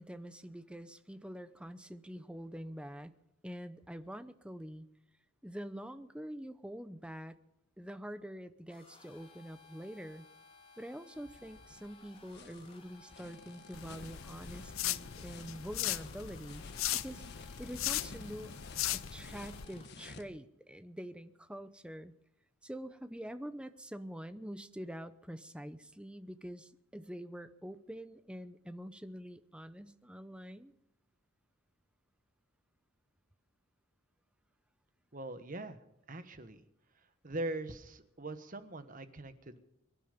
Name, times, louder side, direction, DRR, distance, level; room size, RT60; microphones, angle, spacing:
voice 1, 0.0-3.1 3.4-4.9 5.4-7.3 7.8-10.3 10.8-16.6 16.9-17.2 17.6-18.5 18.9-22.1 22.6-30.7, equal, 5° right, 11 dB, 0.8 m, -45 dB
sound 1, 8.7-19.9, left 4 dB, 25° left, 2.6 m, -59 dB
sound 2, 11.1-20.2, left 3 dB, 55° left, 1.6 m, -53 dB
sound 3, 13.7-19.6, left 13 dB, 75° left, 0.6 m, -38 dB
voice 2, 35.1-35.8 36.1-36.6 37.2-39.6, right 2 dB, 40° right, 10 dB, 1.3 m, -41 dB
24.0 x 11.0 x 5.2 m, 0.85 s
head